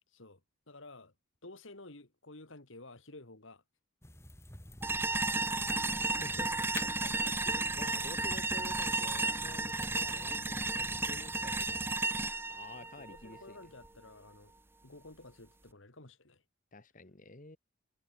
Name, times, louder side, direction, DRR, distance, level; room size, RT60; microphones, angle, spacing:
voice 1, 0.7-1.1 1.4-3.6 5.0-5.6 7.9-8.1 12.8-14.5 14.8-16.4, left 2 dB, 65° left, 2.5 m, -53 dB
sound 1, 4.0-12.0, left 1 dB, 10° left, 2.9 m, -50 dB
sound 2, 4.8-13.9, right 3 dB, 10° right, 0.6 m, -33 dB
voice 2, 6.0-13.6 16.7-17.6, left 2 dB, 40° left, 1.4 m, -51 dB
head